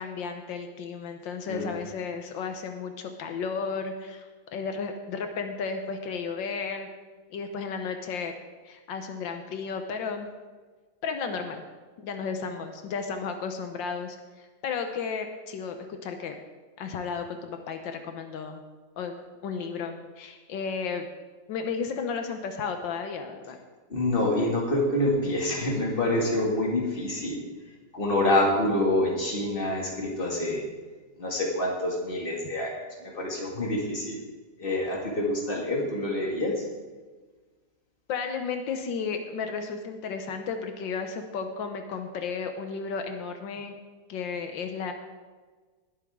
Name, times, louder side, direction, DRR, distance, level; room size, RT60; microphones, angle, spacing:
voice 1, 0.0-6.9 7.3-8.3 8.6-10.3 11.0-11.6 12.0-16.4 16.8-18.6 19.0-19.1 19.4-21.1 21.5-23.6 38.1-43.8 44.1-44.9, left 5 dB, 85° left, 6 dB, 1.6 m, -33 dB
voice 2, 23.9-27.5 27.9-30.6 31.2-34.2 34.6-36.5, left 1 dB, 30° left, -2 dB, 2.4 m, -27 dB
19.5 x 8.1 x 3.7 m, 1.4 s
omnidirectional pair, 2.0 m